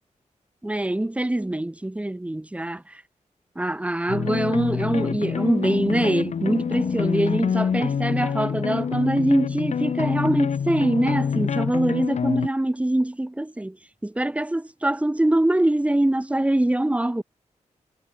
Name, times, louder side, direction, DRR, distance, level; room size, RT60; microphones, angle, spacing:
voice 1, 0.6-3.0 3.6-13.8 14.0-17.2, right 1 dB, 10° right, 1.0 m, -23 dB
sound 1, 4.1-12.5, left 7 dB, 60° left, 0.8 m, -26 dB
wide cardioid pair, 105°, 13 cm